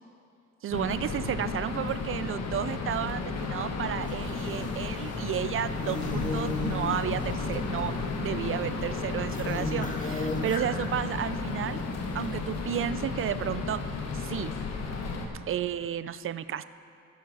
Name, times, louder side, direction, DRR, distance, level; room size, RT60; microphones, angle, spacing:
voice 1, 0.6-11.8 12.1-13.8 14.1-14.5 15.5-16.6, right 10 dB, 45° right, 15 dB, 0.4 m, -32 dB
sound 1, 0.7-15.3, left 4 dB, 55° left, 1.3 m, -33 dB
sound 2, 4.0-11.3 11.6-12.6, left 3 dB, 25° left, 1.5 m, -37 dB
12.5 x 10.5 x 4.1 m, 2.4 s
cardioid pair, 90°, 30 cm